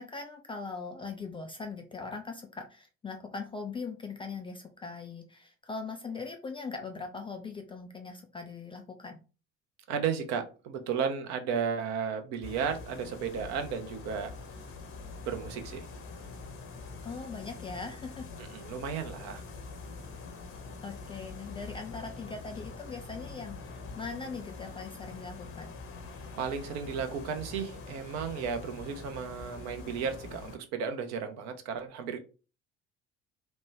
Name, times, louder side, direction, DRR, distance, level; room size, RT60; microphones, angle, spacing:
voice 1, 0.0-9.2 17.0-18.3 20.8-25.7, left 4 dB, 15° left, 0.4 m, -40 dB
voice 2, 9.9-14.3 15.2-15.9 18.4-19.4 26.4-32.2, right 6 dB, 50° right, 0.7 m, -34 dB
sound 1, 12.4-30.6, left 4 dB, 40° left, 0.8 m, -44 dB
3.1 x 2.1 x 3.2 m
figure-of-eight pair, 55°, 36 cm